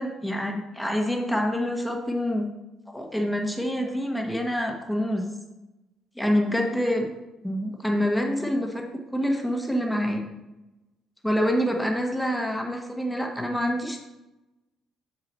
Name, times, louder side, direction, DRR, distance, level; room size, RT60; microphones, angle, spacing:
voice 1, 0.0-2.5 2.9-5.4 6.2-7.1 7.4-8.9 9.1-10.2 11.2-14.0, equal, ahead, 1 dB, 1.1 m, -26 dB
7.9 x 5.7 x 3.1 m, 1.0 s
cardioid pair, 120°, 0 cm